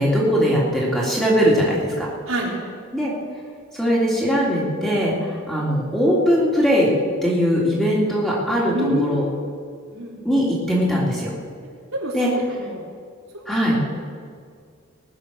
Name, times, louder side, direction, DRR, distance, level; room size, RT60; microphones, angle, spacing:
voice 1, 0.0-2.1 2.9-3.1 3.7-6.9 7.2-9.2 10.2-11.3 12.1-12.3 13.5-13.8, equal, ahead, -6 dB, 3.2 m, -20 dB
voice 2, 8.7-9.3 9.9-10.2 11.9-12.1 12.5-12.8 13.3-13.4 13.7-13.8, right 1 dB, 80° right, -4 dB, 3.7 m, -27 dB
20.0 x 9.0 x 6.4 m, 2.1 s
head